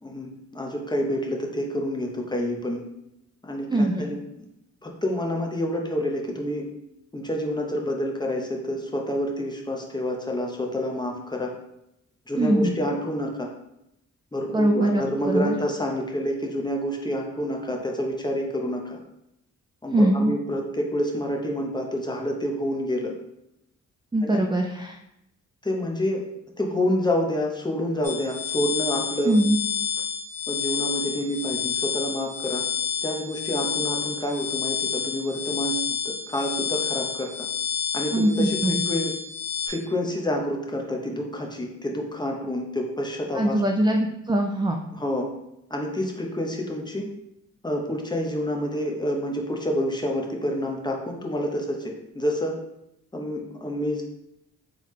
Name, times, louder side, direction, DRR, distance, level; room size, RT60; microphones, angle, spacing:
voice 1, 0.0-2.8 3.4-4.2 4.8-6.7 7.1-11.5 12.3-13.5 14.3-19.0 19.8-23.1 24.2-24.4 25.6-26.2 26.6-29.4 30.5-32.6 33.0-37.5 37.9-39.1 39.7-43.6 44.9-45.3 45.7-47.1 47.6-52.5 53.1-54.0, equal, 15° left, 0 dB, 0.8 m, -28 dB
voice 2, 3.7-4.0 12.4-12.7 14.5-15.5 19.9-20.4 24.1-25.0 29.2-29.6 38.1-38.8 43.3-44.8, right 1 dB, 15° right, 2 dB, 0.3 m, -22 dB
sound 1, 28.0-39.7, left 7 dB, 50° left, 1.5 m, -29 dB
3.8 x 3.3 x 3.1 m, 0.83 s
cardioid pair, 75°, 30 cm